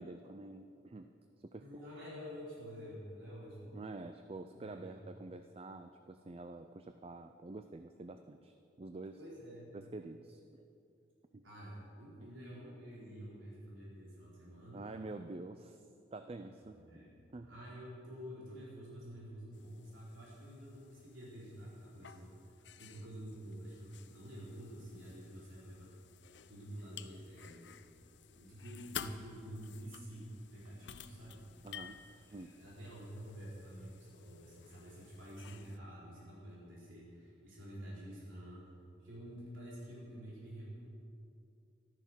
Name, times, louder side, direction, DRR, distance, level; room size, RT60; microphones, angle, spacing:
voice 1, 0.0-1.7 3.7-9.2 9.7-10.4 11.3-11.4 14.7-15.8 16.1-16.8 17.3-17.5 31.6-32.0 32.3-32.6, right 2 dB, 30° right, 8 dB, 0.4 m, -47 dB
voice 2, 1.6-3.8 4.6-5.0 9.2-9.8 11.4-14.9 16.7-17.2 17.5-25.9 26.5-27.7 28.3-31.5 32.3-38.6 39.0-40.9, equal, 85° right, -6 dB, 4.1 m, -49 dB
sound 1, 19.5-35.8, left 8 dB, 65° left, 0.6 m, -53 dB
14.0 x 12.5 x 6.2 m, 2.6 s
head